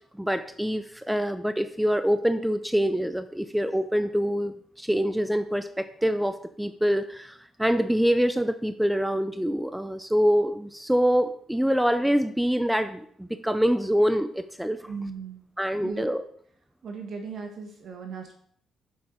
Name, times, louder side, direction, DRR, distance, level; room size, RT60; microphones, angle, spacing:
voice 1, 0.2-14.8 15.6-16.2, equal, 5° right, 9 dB, 0.7 m, -25 dB
voice 2, 14.8-15.4 15.8-16.1 16.8-18.3, right 5 dB, 60° right, 2 dB, 2.4 m, -37 dB
7.2 x 7.0 x 5.1 m, 0.62 s
supercardioid pair, 55°, 0 cm